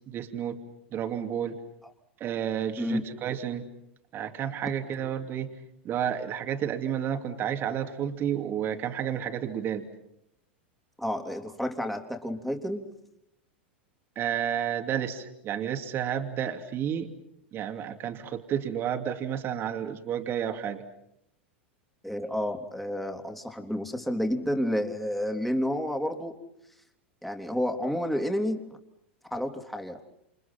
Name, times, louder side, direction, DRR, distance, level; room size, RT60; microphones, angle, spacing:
voice 1, 0.1-0.6 0.9-1.6 2.2-3.7 4.1-5.5 5.8-9.9 14.2-17.1 17.5-20.8, right 9 dB, 35° right, 5 dB, 2.8 m, -31 dB
voice 2, 11.0-12.9 22.0-26.3 27.2-28.8 29.3-30.0, equal, ahead, 4 dB, 3.4 m, -30 dB
29.0 x 29.0 x 6.0 m, 0.78 s
hypercardioid pair, 95°, 6 cm